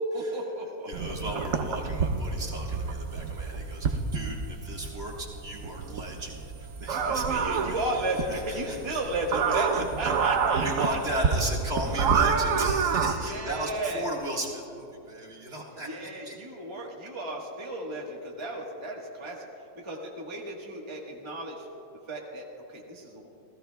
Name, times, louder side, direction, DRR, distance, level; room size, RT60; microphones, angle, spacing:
voice 1, 0.0-1.4 6.9-11.4 13.2-14.1 15.8-19.5 19.8-21.7 22.1-23.3, right 1 dB, 20° right, -2 dB, 1.4 m, -34 dB
voice 2, 0.9-9.0 9.3-10.1 10.6-16.4, right 1 dB, 45° right, -2 dB, 2.0 m, -36 dB
sound 1, 0.9-13.1, right 5 dB, 65° right, 1.1 m, -28 dB
29.5 x 15.5 x 2.3 m, 2.9 s
omnidirectional pair, 1.6 m